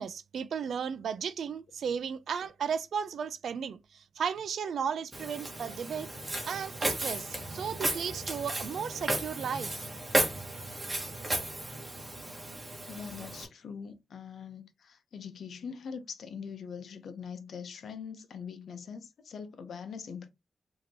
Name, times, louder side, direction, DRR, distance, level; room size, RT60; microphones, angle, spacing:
voice 1, 0.0-6.1 6.5-9.9, right 7 dB, 85° right, 0.4 m, -35 dB
Walk footsteps, 5.1-13.5, right 1 dB, 20° right, 1.3 m, -34 dB
voice 2, 12.9-20.3, left 6 dB, 75° left, 0.8 m, -42 dB
5.1 x 2.9 x 2.8 m
wide cardioid pair, 135°, 0 cm